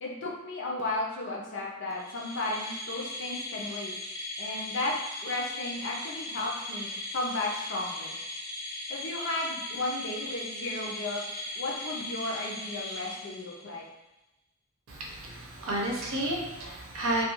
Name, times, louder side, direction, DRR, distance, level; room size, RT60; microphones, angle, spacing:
voice 1, 0.0-3.9 4.4-4.9 5.2-8.2 8.9-11.2 11.6-13.8, left 2 dB, 60° left, -2 dB, 0.6 m, -34 dB
sound 1, 1.9-13.8, left 1 dB, 15° left, 0.5 m, -38 dB
voice 2, 14.9-17.2, right 1 dB, 70° right, -2 dB, 0.6 m, -31 dB
2.3 x 2.3 x 2.9 m, 0.93 s
head